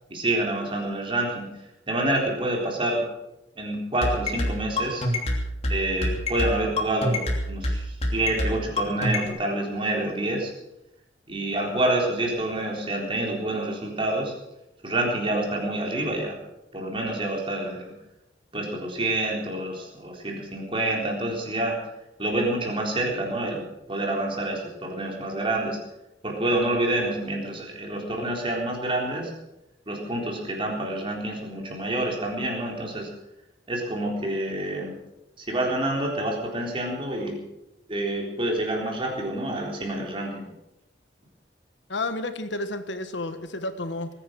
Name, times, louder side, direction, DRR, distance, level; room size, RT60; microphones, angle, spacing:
voice 1, 0.1-1.5 1.9-3.0 3.6-5.0 5.7-10.5 11.3-14.3 14.8-16.4 16.7-17.9 18.5-21.8 22.2-23.6 23.9-25.8 26.2-29.3 29.9-33.1 33.7-35.0 35.4-37.3 37.9-40.4, right 1 dB, 30° right, 0 dB, 3.9 m, -27 dB
sound 1, 4.0-9.3, left 1 dB, 35° left, 2.9 m, -25 dB
voice 2, 41.9-44.1, left 2 dB, 85° left, 10 dB, 1.5 m, -31 dB
20.0 x 10.0 x 6.5 m, 0.91 s
head